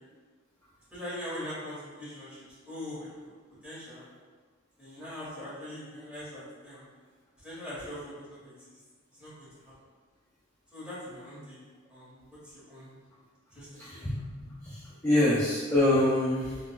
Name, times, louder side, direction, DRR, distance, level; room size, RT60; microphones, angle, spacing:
voice 1, 0.9-3.3 3.6-4.1 4.8-6.8 7.4-8.7 9.2-9.7 10.7-11.6 11.9-12.9 13.5-14.1, left 1 dB, 5° right, -11 dB, 1.3 m, -42 dB
voice 2, 13.8-16.6, left 1 dB, 10° left, -8 dB, 0.4 m, -26 dB
3.8 x 2.3 x 2.3 m, 1.5 s
head